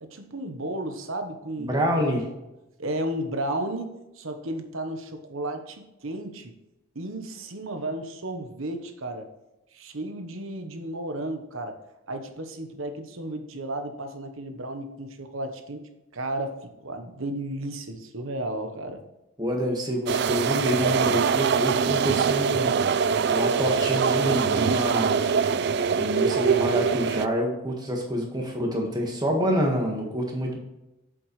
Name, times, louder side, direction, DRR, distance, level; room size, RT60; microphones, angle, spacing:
voice 1, 0.0-2.2 2.8-6.5 6.9-9.3 9.7-11.8 12.1-16.6 16.8-19.0, right 1 dB, 70° right, 7 dB, 1.1 m, -33 dB
voice 2, 1.6-2.2 19.4-22.7 23.3-25.2 26.0-30.6, equal, 20° right, 0 dB, 1.7 m, -27 dB
sound 1, 20.1-27.3, right 6 dB, 50° right, 0.3 m, -23 dB
7.9 x 7.4 x 3.2 m, 0.96 s
head